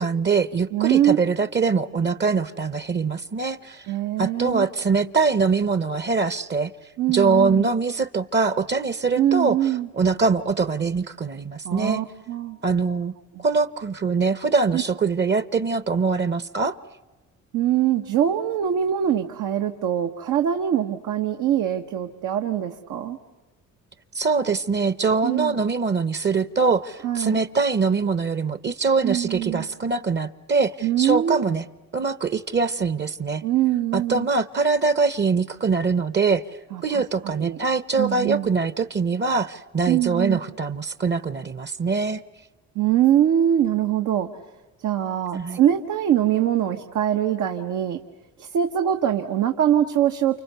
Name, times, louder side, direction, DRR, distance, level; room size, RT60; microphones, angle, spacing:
voice 1, 0.0-3.9 4.2-6.7 7.1-9.6 10.0-12.0 12.6-13.1 13.4-16.8 24.1-31.6 31.9-33.4 33.9-36.4 36.8-42.2 45.3-45.6, right 4 dB, 35° right, 15 dB, 0.8 m, -23 dB
voice 2, 0.7-1.2 3.9-4.7 7.0-7.7 9.2-9.9 11.6-12.6 13.3-13.4 14.7-14.8 17.5-23.2 25.2-25.6 27.0-27.4 29.0-29.7 30.8-31.4 33.4-34.3 36.7-37.6 38.0-38.5 39.9-40.4 42.7-44.3 44.8-48.0 48.4-50.4, right 11 dB, 85° right, 5 dB, 1.2 m, -23 dB
29.5 x 28.0 x 6.8 m, 1.2 s
cardioid pair, 90°, 30 cm